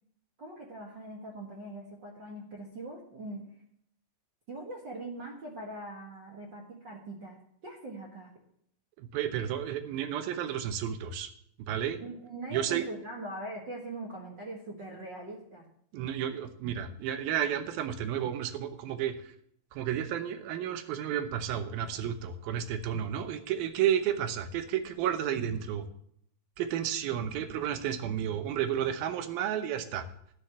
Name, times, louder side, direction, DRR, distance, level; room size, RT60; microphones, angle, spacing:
voice 1, 0.4-3.5 4.5-8.3 12.0-15.7, right 2 dB, 45° right, -1 dB, 1.6 m, -42 dB
voice 2, 9.0-11.3 11.6-12.0 12.5-12.8 15.9-19.1 19.7-25.8 26.6-30.0, right 9 dB, 80° right, 9 dB, 2.8 m, -32 dB
12.5 x 5.0 x 8.7 m, 0.68 s
omnidirectional pair, 4.2 m